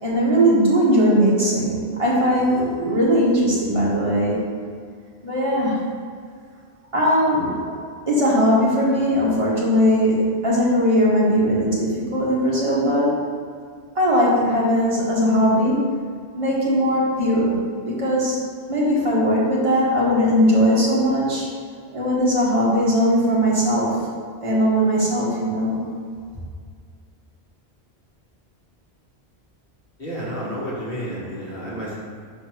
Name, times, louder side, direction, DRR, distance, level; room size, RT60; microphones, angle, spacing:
voice 1, 0.0-4.4 5.2-5.8 6.9-7.7 8.1-13.2 13.9-15.9 16.3-17.6 17.8-18.4 18.7-21.5 21.9-24.0 24.4-25.8, equal, 30° right, -7 dB, 1.7 m, -19 dB
voice 2, 30.0-32.0, equal, 60° left, -7 dB, 1.9 m, -30 dB
5.5 x 4.2 x 6.2 m, 2.1 s
omnidirectional pair, 1.1 m